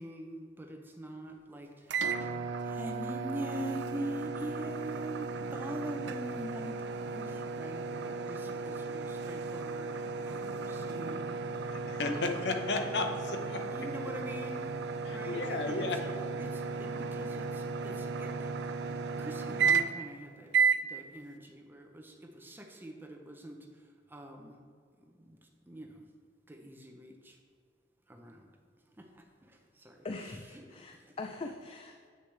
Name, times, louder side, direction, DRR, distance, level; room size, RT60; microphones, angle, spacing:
voice 1, 0.0-2.3 2.6-7.8 8.3-11.4 12.0-12.5 13.6-14.7 15.1-15.9 16.4-18.7 19.2-20.6 20.8-23.7 24.1-24.6 25.2-25.4 25.7-26.0 26.5-27.4 28.1-28.4 29.0-29.5 29.8-30.1 31.0-31.1, right 1 dB, 10° right, 2 dB, 0.7 m, -43 dB
sound 1, 1.9-20.1 20.5-20.8, right 5 dB, 80° right, 0.4 m, -34 dB
voice 2, 11.7-13.6 15.0-16.0, left 3 dB, 80° left, 5 dB, 0.8 m, -33 dB
voice 3, 30.0-32.1, left 3 dB, 30° left, 4 dB, 0.3 m, -42 dB
7.9 x 6.5 x 3.3 m, 2.1 s
head